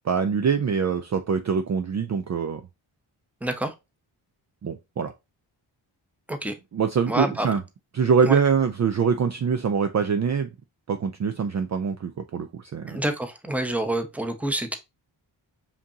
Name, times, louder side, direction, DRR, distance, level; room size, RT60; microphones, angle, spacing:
voice 1, 0.0-2.6 4.6-5.1 6.7-7.6 7.9-10.5 10.9-13.0, right 6 dB, 35° right, 0.5 m, -24 dB
voice 2, 3.4-3.7 6.3-6.5 7.1-7.5 8.2-8.4 12.9-14.8, right 1 dB, 5° right, 0.9 m, -27 dB
5.1 x 2.7 x 2.8 m
supercardioid pair, 50°, 49 cm